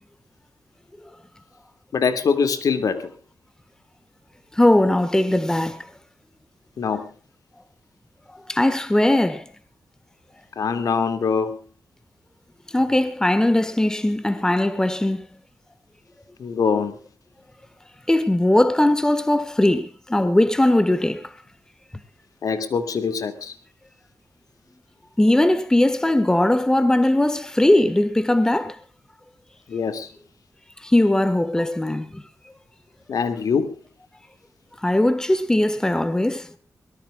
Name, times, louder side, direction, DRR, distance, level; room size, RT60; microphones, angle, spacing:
voice 1, 1.9-3.1 6.8-7.1 10.6-11.6 16.4-17.0 22.4-23.5 29.7-30.1 33.1-33.7, left 5 dB, 75° left, 2.3 m, -23 dB
voice 2, 4.5-5.8 8.5-9.4 12.7-15.2 18.1-21.2 25.2-28.7 30.8-32.2 34.8-36.5, left 1 dB, 10° left, 1.5 m, -19 dB
23.0 x 19.5 x 2.4 m
wide cardioid pair, 140°, 6 cm